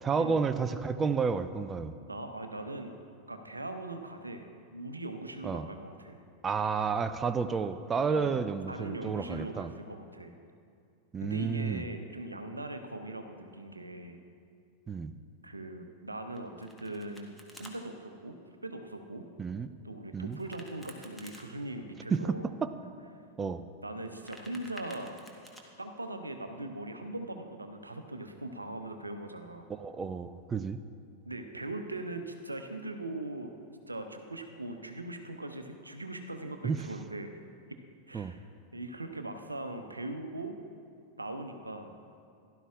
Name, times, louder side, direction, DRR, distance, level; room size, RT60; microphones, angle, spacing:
voice 1, 0.0-1.9 5.4-5.7 6.4-9.7 11.1-11.8 14.9-15.1 19.4-19.7 20.1-20.4 22.1-22.4 22.6-22.7 23.4-23.6 29.7-30.8 36.6-36.8 38.1-38.3, right 5 dB, 20° right, 11 dB, 0.4 m, -31 dB
voice 2, 2.0-2.9 3.3-6.2 8.1-8.4 8.7-10.3 11.2-14.2 15.4-18.4 18.6-19.3 19.8-22.5 23.8-25.2 25.8-29.7 31.2-33.5 33.9-37.4 38.1-38.4 38.7-40.6 41.2-41.9, right 2 dB, 80° right, 6 dB, 0.8 m, -40 dB
Domestic sounds home sounds, 16.3-17.7 20.3-21.5 24.0-25.6, equal, ahead, 1.3 m, -51 dB
16.0 x 11.5 x 2.4 m, 2.4 s
figure-of-eight pair, 90°, 0 cm